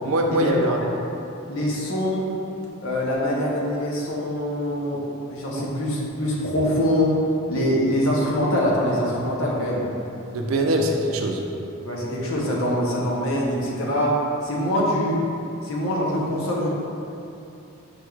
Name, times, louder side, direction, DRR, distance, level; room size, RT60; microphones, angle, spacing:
voice 1, 0.0-0.8 1.6-1.7 5.5-5.6 10.3-11.4, right 1 dB, 85° right, 2 dB, 0.4 m, -23 dB
voice 2, 1.5-2.3 2.8-5.0 5.3-7.2 7.5-9.8 11.8-14.2 14.4-15.2 15.6-16.7, equal, 80° left, -4 dB, 0.7 m, -24 dB
5.1 x 3.1 x 2.3 m, 2.8 s
head